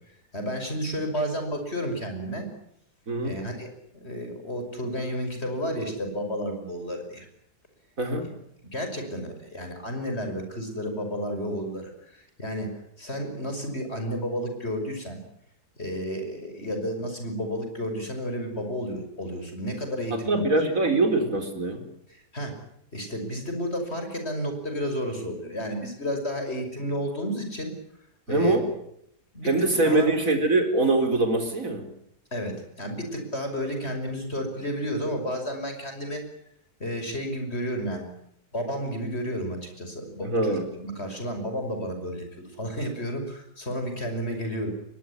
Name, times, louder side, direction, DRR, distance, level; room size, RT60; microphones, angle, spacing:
voice 1, 0.3-2.5 3.2-7.3 8.2-8.3 8.6-15.2 15.8-20.5 21.0-21.1 22.1-22.6 22.9-27.7 28.3-28.6 29.3-29.5 29.8-30.2 32.3-36.2 36.8-38.1 38.5-44.7, equal, 40° left, 6 dB, 6.1 m, -32 dB
voice 2, 8.0-8.3 20.3-21.8 28.3-28.6 29.4-31.9 40.2-40.7, right 2 dB, 55° right, 6 dB, 4.7 m, -23 dB
23.0 x 20.0 x 9.9 m, 0.73 s
omnidirectional pair, 1.7 m